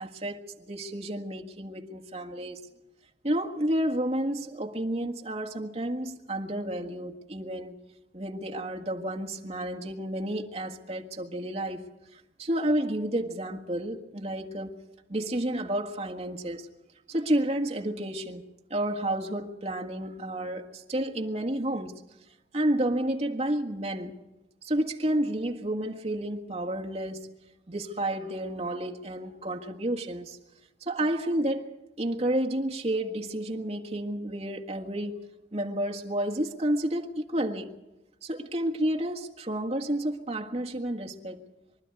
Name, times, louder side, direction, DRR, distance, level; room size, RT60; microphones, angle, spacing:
voice 1, 0.0-2.6 3.2-7.8 8.1-11.9 12.1-14.8 15.1-16.7 17.1-18.4 18.7-22.0 22.5-24.2 24.6-27.3 27.7-30.4 30.8-31.7 32.0-37.8 38.2-41.5, right 1 dB, 35° right, 1.7 m, -31 dB
24.5 x 12.0 x 9.5 m
head